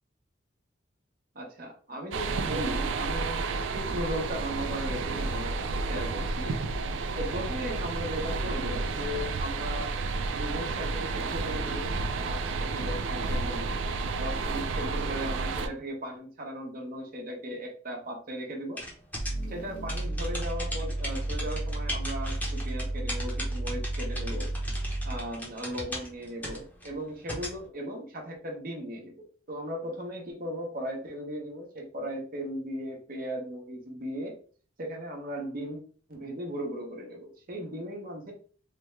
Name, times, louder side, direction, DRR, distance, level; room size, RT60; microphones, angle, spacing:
voice 1, 1.3-3.4 3.7-6.5 7.2-9.9 10.3-11.9 12.2-13.7 14.2-18.8 19.5-24.5 25.0-34.3 34.8-35.8 36.1-38.3, equal, 50° right, 1 dB, 0.9 m, -37 dB
sound 1, 2.1-15.7, right 3 dB, 80° right, 0.4 m, -31 dB
sound 2, 18.8-27.6, equal, 10° left, 0.9 m, -38 dB
sound 3, 19.2-25.3, right 1 dB, 65° left, 0.9 m, -33 dB
3.3 x 2.2 x 3.2 m, 0.42 s
head